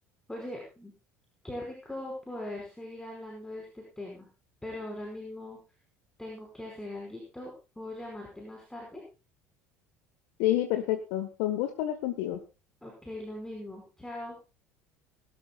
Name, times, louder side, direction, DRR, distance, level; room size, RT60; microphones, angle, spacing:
voice 1, 0.3-0.9 1.4-4.3 4.6-5.6 6.2-9.0 12.8-14.4, left 1 dB, 5° left, -1 dB, 5.4 m, -40 dB
voice 2, 10.4-12.4, left 13 dB, 65° left, 7 dB, 1.5 m, -29 dB
22.0 x 12.5 x 2.4 m, 0.31 s
figure-of-eight pair, 65°, 8 cm